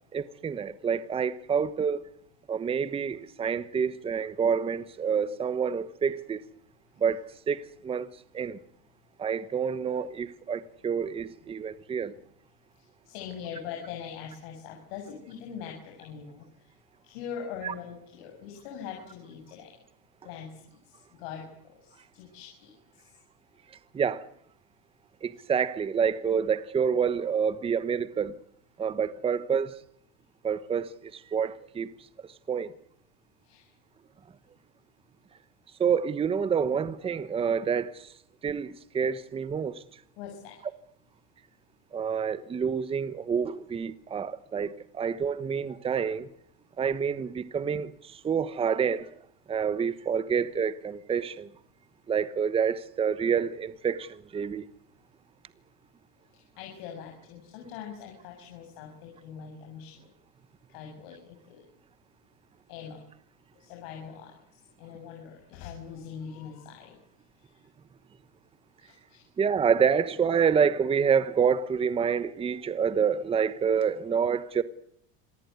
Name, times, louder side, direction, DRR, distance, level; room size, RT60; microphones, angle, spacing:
voice 1, 0.1-2.1 2.5-6.4 7.0-8.6 9.2-12.2 17.6-17.7 23.9-24.3 25.2-28.4 28.8-29.8 30.4-31.9 32.2-32.7 35.8-38.1 38.4-40.0 41.9-46.3 46.8-49.1 49.5-51.5 52.1-54.7 69.4-74.6, right 7 dB, 15° right, 1.1 m, -28 dB
voice 2, 12.8-16.7 17.0-19.8 20.2-23.1 25.3-25.4 33.4-33.7 40.2-40.6 56.3-60.1 60.7-61.6 62.7-63.0 63.5-67.0 67.4-67.6 68.8-69.3, left 7 dB, 65° left, 7.4 m, -43 dB
27.0 x 18.0 x 9.5 m
supercardioid pair, 140°, 32 cm